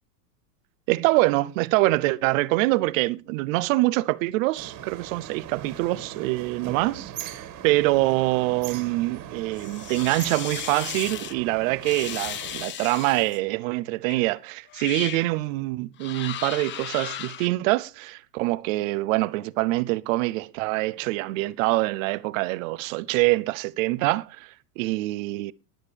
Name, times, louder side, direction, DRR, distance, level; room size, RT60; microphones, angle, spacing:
voice 1, 0.9-25.5, right 20 dB, 55° right, 0.7 m, -25 dB
sound 1, 4.6-12.7, right 10 dB, 40° right, 1.8 m, -40 dB
sound 2, 9.6-11.3 11.8-13.4 14.1-14.2 14.7-15.3 16.0-17.5, left 11 dB, 25° left, 0.6 m, -35 dB
21.0 x 8.0 x 3.4 m
hypercardioid pair, 115°, 49 cm